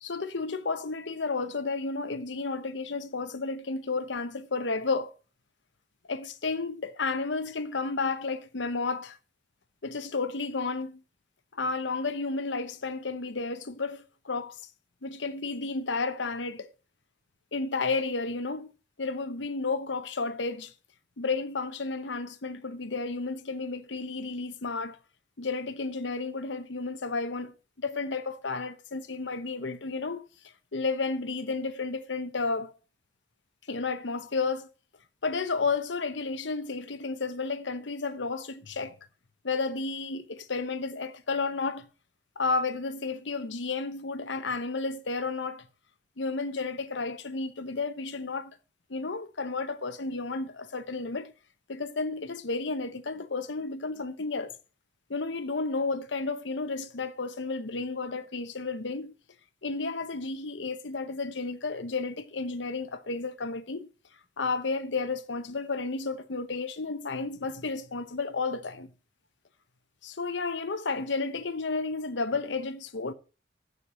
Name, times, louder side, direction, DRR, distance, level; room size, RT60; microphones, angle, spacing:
voice 1, 0.0-5.1 6.1-9.2 9.8-11.0 11.5-14.6 15.0-16.7 17.5-18.7 19.0-20.7 21.2-25.0 25.4-30.2 30.7-32.7 33.7-34.7 35.2-39.0 39.4-41.9 42.4-45.7 46.2-48.6 48.9-51.3 51.7-54.5 55.1-59.1 59.6-63.9 64.4-68.9 70.0-73.1, left 4 dB, 90° left, 1.0 m, -32 dB
7.0 x 6.6 x 7.2 m
head